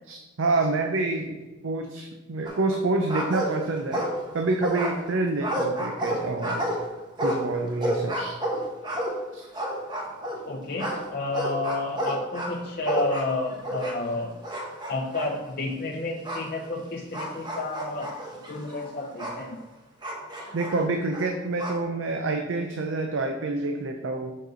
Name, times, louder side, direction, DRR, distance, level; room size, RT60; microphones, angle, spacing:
voice 1, 0.1-4.1 4.3-6.7 7.2-8.4 9.3-9.5 20.5-24.4, right 3 dB, 75° right, 4 dB, 0.5 m, -27 dB
sound 1, 2.5-2.8 3.1-4.3 4.6-10.4 10.8-14.2 14.4-15.3 16.2-16.5 17.1-19.4 20.0-21.8, right 1 dB, 20° right, 1.0 m, -30 dB
voice 2, 10.3-14.4 14.9-18.1 18.5-19.6, left 2 dB, 50° left, 0 dB, 0.6 m, -31 dB
6.0 x 5.1 x 3.9 m, 1.1 s
head